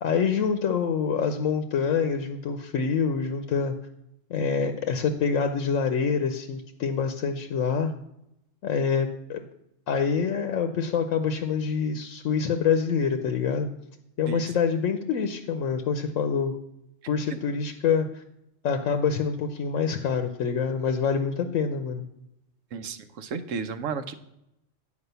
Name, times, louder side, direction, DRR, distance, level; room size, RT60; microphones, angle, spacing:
voice 1, 0.0-3.7 4.3-7.9 8.6-9.4 9.9-13.7 14.2-16.6 17.1-18.2 18.6-22.0, left 6 dB, 85° left, 7 dB, 1.1 m, -26 dB
voice 2, 22.7-24.1, right 5 dB, 90° right, 10 dB, 1.1 m, -33 dB
9.8 x 5.0 x 6.7 m, 0.81 s
omnidirectional pair, 1.3 m